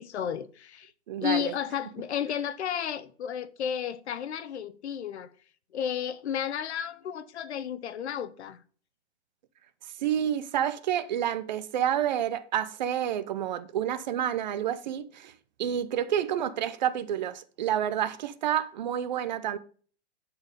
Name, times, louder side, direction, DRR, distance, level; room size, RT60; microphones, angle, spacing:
voice 1, 0.0-0.9 1.2-5.3 5.7-8.6, left 9 dB, 70° left, 1.0 m, -32 dB
voice 2, 1.1-1.5 10.0-15.3 15.6-19.6, right 10 dB, 40° right, 0.7 m, -29 dB
11.5 x 4.5 x 5.2 m
hypercardioid pair, 165°, 35 cm